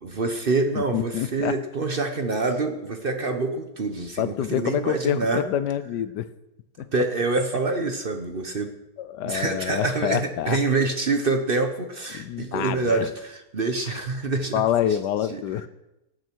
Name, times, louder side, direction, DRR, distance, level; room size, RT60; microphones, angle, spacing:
voice 1, 0.0-5.4 6.9-8.7 9.2-14.6 15.3-15.4, right 3 dB, 40° right, 6 dB, 0.9 m, -26 dB
voice 2, 0.7-1.6 4.2-6.3 6.8-6.9 9.0-10.6 12.1-13.1 13.9-14.0 14.5-15.7, left 10 dB, 85° left, 15 dB, 1.3 m, -27 dB
18.5 x 8.9 x 4.6 m, 0.95 s
omnidirectional pair, 1.8 m